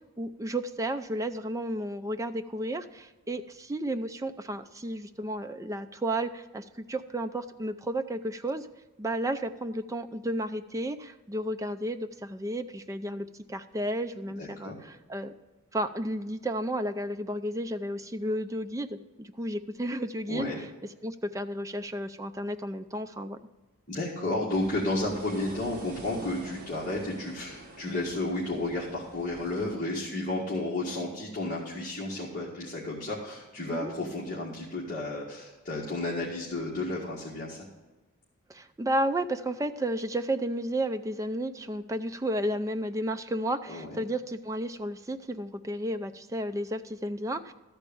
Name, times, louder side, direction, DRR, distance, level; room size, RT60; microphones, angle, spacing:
voice 1, 0.2-8.7 9.0-15.3 15.7-20.7 21.0-23.4 33.7-33.9 38.5-47.5, right 1 dB, 15° right, 8 dB, 0.4 m, -32 dB
voice 2, 14.4-14.8 20.3-20.6 23.9-37.6 43.7-44.0, left 2 dB, 35° left, -6 dB, 1.7 m, -32 dB
sound 1, 24.5-29.8, right 1 dB, 40° right, 1.5 m, -47 dB
13.5 x 4.5 x 8.5 m, 1.2 s
head